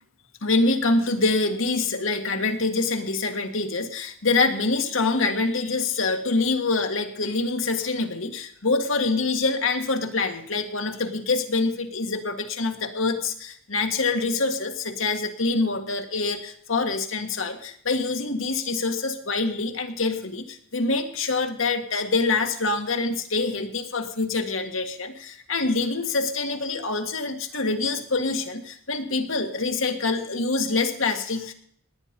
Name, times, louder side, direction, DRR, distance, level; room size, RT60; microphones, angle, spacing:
voice 1, 0.4-31.5, left 3 dB, 70° left, 5 dB, 1.7 m, -25 dB
18.5 x 9.5 x 5.2 m, 0.64 s
head